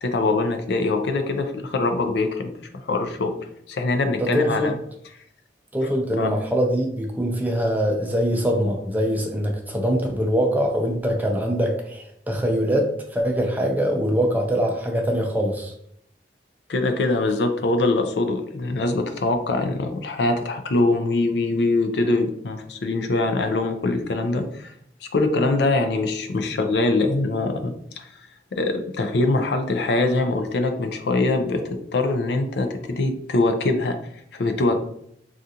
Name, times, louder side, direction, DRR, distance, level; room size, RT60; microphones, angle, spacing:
voice 1, 0.0-2.5 2.8-3.3 3.7-4.7 6.2-6.3 16.7-24.7 25.0-28.1 28.5-34.0 34.3-34.8, left 2 dB, 70° left, 6 dB, 0.4 m, -23 dB
voice 2, 4.2-4.7 5.7-15.7, equal, 10° right, 2 dB, 0.4 m, -23 dB
3.7 x 2.4 x 2.7 m, 0.70 s
head